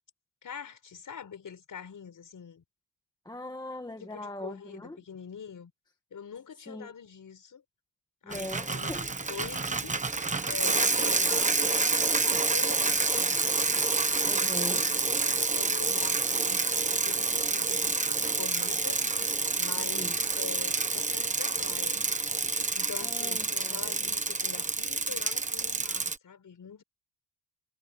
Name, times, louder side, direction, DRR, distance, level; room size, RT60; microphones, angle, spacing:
voice 1, 0.4-2.6 4.0-5.7 6.1-7.6 8.2-9.9 10.5-13.5 14.3-16.7 17.0-19.1 19.6-22.4 22.7-26.8, left 7 dB, 40° left, 5.4 m, -44 dB
voice 2, 3.2-5.0 6.7-6.9 8.2-9.1 14.2-14.9 19.8-20.2 23.0-23.8, left 1 dB, 10° left, 1.5 m, -41 dB
Bicycle, 8.3-26.2, right 3 dB, 15° right, 1.1 m, -28 dB
wide cardioid pair, 180°, 47 cm